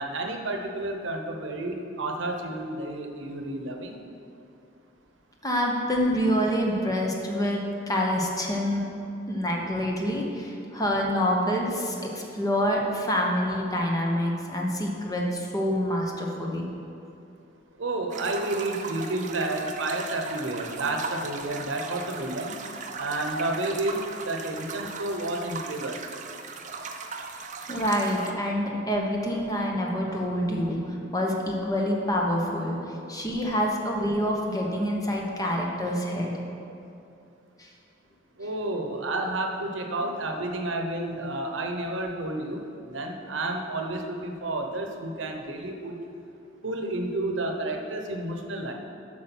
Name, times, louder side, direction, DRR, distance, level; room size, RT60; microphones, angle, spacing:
voice 1, 0.0-4.0 17.8-22.5 23.0-26.0 38.4-46.0 46.6-48.7, right 2 dB, 75° right, 3 dB, 0.9 m, -31 dB
voice 2, 5.4-8.9 9.3-16.7 27.7-36.3 37.6-37.7, equal, 20° left, -1 dB, 1.1 m, -27 dB
sound 1, 18.1-28.3, right 4 dB, 40° right, 0.6 m, -38 dB
8.1 x 6.3 x 6.1 m, 2.7 s
head